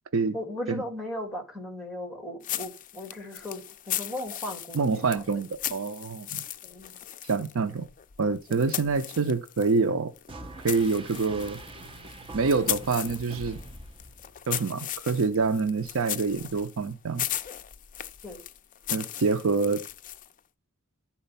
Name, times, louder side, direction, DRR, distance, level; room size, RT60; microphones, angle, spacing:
voice 1, 0.3-5.4 6.3-7.0 8.5-8.6 18.2-18.4, left 1 dB, ahead, 2.2 m, -37 dB
sound 1, 2.4-9.8 10.1-20.4, left 12 dB, 35° left, 0.4 m, -37 dB
voice 2, 4.7-6.4 7.2-7.9 8.2-10.1 10.6-11.6 12.3-13.6 14.5-17.3 18.9-19.8, right 4 dB, 65° right, 0.6 m, -26 dB
sound 2, 10.3-14.6, right 2 dB, 25° right, 0.9 m, -43 dB
11.5 x 4.3 x 5.6 m
head